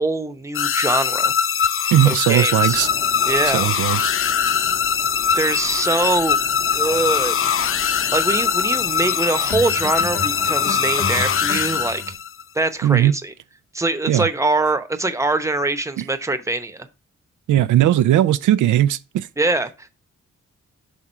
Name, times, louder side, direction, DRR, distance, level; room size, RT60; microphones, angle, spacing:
voice 1, 0.0-1.3 2.0-2.8 3.2-3.6 5.3-6.4 6.7-7.4 8.1-12.0 12.5-13.3 13.7-16.9 19.4-19.9, right 2 dB, 10° right, 0.9 m, -23 dB
sound 1, 0.5-12.4, left 7 dB, 45° left, 0.4 m, -21 dB
voice 2, 1.9-2.9 3.5-4.1 12.8-13.1 14.1-14.3 16.0-16.1 17.5-19.3, right 12 dB, 90° right, 0.5 m, -17 dB
sound 2, 2.6-11.9, left 3 dB, 30° left, 1.0 m, -39 dB
sound 3, 6.8-7.1 9.5-12.1, left 3 dB, 80° left, 2.5 m, -32 dB
6.1 x 3.6 x 5.5 m
cardioid pair, 70°, 30 cm